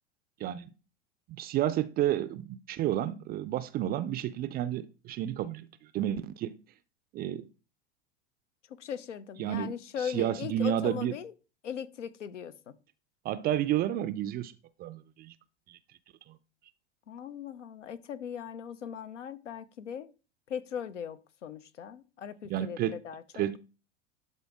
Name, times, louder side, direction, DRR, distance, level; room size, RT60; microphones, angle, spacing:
voice 1, 0.4-0.7 1.3-6.6 7.1-7.5 9.4-11.1 13.2-14.5 14.8-15.3 15.7-15.8 16.3-16.4 22.5-23.0 23.3-23.6, right 12 dB, 25° right, 0.4 m, -31 dB
voice 2, 8.7-11.3 11.6-12.7 17.1-20.1 20.5-23.4, left 8 dB, 80° left, 0.7 m, -39 dB
11.5 x 3.9 x 3.5 m
hypercardioid pair, 85°, 35 cm